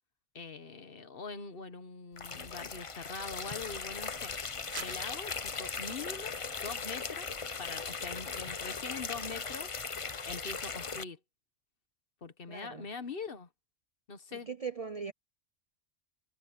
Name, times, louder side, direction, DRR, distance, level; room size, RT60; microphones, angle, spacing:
voice 1, 0.3-4.3 4.8-6.4 6.6-7.3 7.6-9.7 10.2-11.2 12.2-13.5 14.1-14.5, left 4 dB, 50° left, 1.3 m, -43 dB
sound 1, 2.2-11.0, left 5 dB, 30° left, 0.7 m, -38 dB
sound 2, 3.8-8.9, right 5 dB, 60° right, 1.6 m, -53 dB
voice 2, 12.5-12.9 14.3-15.1, right 5 dB, 40° right, 0.5 m, -40 dB
omnidirectional pair, 1.2 m